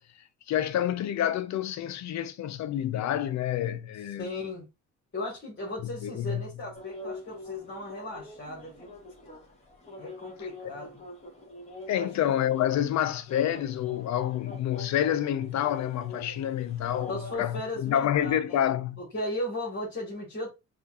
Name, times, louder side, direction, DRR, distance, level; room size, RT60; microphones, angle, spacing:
voice 1, 0.5-4.3 6.0-6.4 11.9-19.0, left 11 dB, 65° left, 0.5 m, -28 dB
voice 2, 4.2-4.7 5.1-9.0 10.0-11.0 11.9-12.1 17.1-20.5, left 1 dB, 40° left, 1.8 m, -36 dB
sound 1, 6.7-17.4, left 1 dB, 20° left, 1.6 m, -45 dB
5.4 x 2.5 x 2.3 m
cardioid pair, 90°, 30 cm